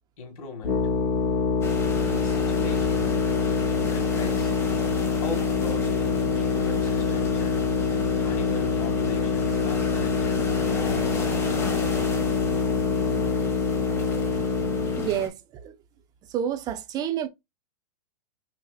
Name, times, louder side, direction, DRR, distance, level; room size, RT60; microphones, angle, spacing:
voice 1, 0.2-0.8 2.0-3.2 3.9-4.6 5.1-7.7 8.2-11.6, left 4 dB, 60° left, 1.9 m, -39 dB
sound 1, 0.6-15.1, left 4 dB, 45° left, 2.7 m, -25 dB
sound 2, 1.6-15.3, left 3 dB, 15° left, 1.1 m, -35 dB
voice 2, 15.0-15.3 15.6-15.7 16.3-17.3, right 10 dB, 20° right, 0.5 m, -28 dB
5.6 x 2.7 x 2.3 m
hypercardioid pair, 150°, 20 cm